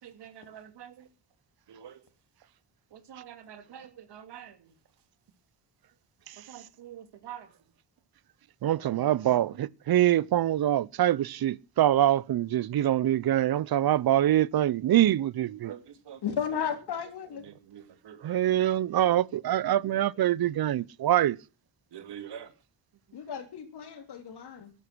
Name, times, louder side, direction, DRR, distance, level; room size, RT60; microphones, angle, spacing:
voice 1, 0.0-1.1 1.7-2.0 2.9-4.8 6.4-7.5 8.7-9.3 15.6-16.2 17.4-18.4 19.1-20.0 21.9-22.5 23.1-23.2, right 9 dB, 85° right, 2.9 m, -47 dB
voice 2, 8.6-15.7 18.2-21.4, right 12 dB, 65° right, 0.7 m, -24 dB
voice 3, 16.2-17.4 23.1-24.7, left 8 dB, 75° left, 3.5 m, -34 dB
14.5 x 12.5 x 6.1 m
wide cardioid pair, 125°, 40 cm